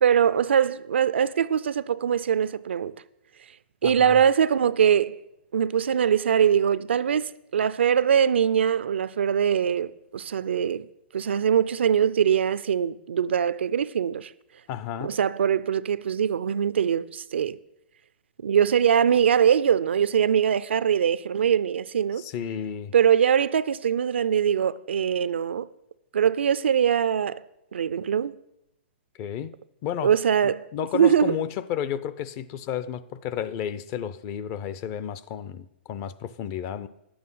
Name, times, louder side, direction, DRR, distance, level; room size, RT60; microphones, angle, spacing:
voice 1, 0.0-2.9 3.8-5.2 5.5-10.9 11.1-14.3 15.0-17.6 18.4-22.2 22.9-25.7 26.1-27.4 27.7-28.4 30.0-30.7 30.9-31.3, right 8 dB, 85° right, 0.5 m, -22 dB
voice 2, 3.8-4.2 14.7-15.1 22.2-22.9 29.2-29.5 29.8-30.1 30.7-36.9, left 9 dB, 30° left, 0.5 m, -32 dB
10.5 x 8.6 x 5.6 m
hypercardioid pair, 150°, 6 cm